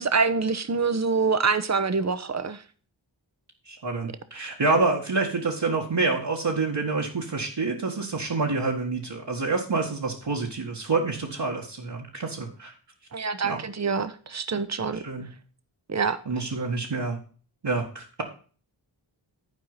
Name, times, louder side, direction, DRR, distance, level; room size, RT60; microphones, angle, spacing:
voice 1, 0.0-2.6 13.1-15.1 15.9-16.2, right 4 dB, 35° right, 13 dB, 0.9 m, -25 dB
voice 2, 3.7-12.8 13.4-13.6 14.9-15.3 16.3-17.2 17.6-18.2, right 3 dB, 60° right, -3 dB, 1.9 m, -27 dB
11.5 x 4.7 x 5.6 m, 0.40 s
cardioid pair, 45°, 46 cm